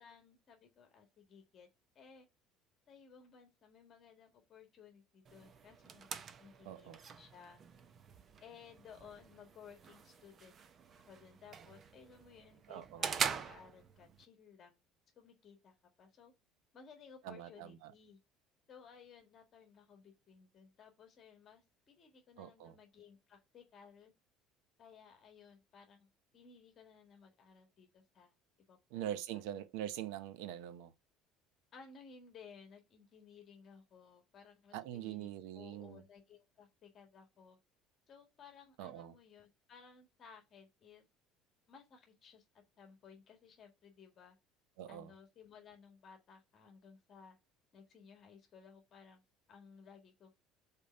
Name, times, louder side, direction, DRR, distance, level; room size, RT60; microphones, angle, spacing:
voice 1, 0.0-1.7 2.0-2.3 2.9-7.6 8.4-10.6 11.0-14.8 15.2-16.3 16.7-18.2 18.7-24.1 24.8-26.1 26.3-28.3 28.6-29.4 31.7-35.3 35.5-37.6 38.1-41.0 41.7-42.5 42.8-44.4 44.9-47.4 47.7-49.2 49.5-50.3, left 6 dB, 35° left, 1.7 m, -58 dB
sound 1, 5.2-14.2, right 6 dB, 35° right, 0.6 m, -44 dB
voice 2, 6.7-7.0 12.7-13.1 17.3-17.9 22.4-22.7 28.9-30.9 34.7-36.0 38.8-39.1 44.8-45.1, right 11 dB, 85° right, 0.7 m, -43 dB
5.3 x 4.2 x 5.3 m
cardioid pair, 140°, 0 cm